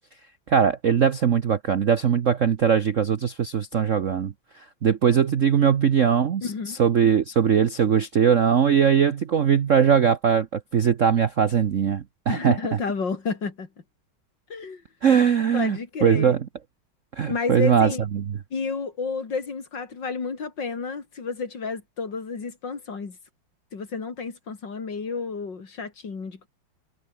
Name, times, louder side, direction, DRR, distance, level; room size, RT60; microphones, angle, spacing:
voice 1, 0.5-6.5 6.8-12.6 15.0-16.4 17.2-18.4, right 7 dB, 55° right, 0.9 m, -21 dB
voice 2, 6.4-6.8 12.3-13.7 14.5-14.8 15.5-16.4 17.3-18.0 18.5-23.2 23.7-26.5, left 4 dB, 55° left, 3.5 m, -31 dB
omnidirectional pair, 2.4 m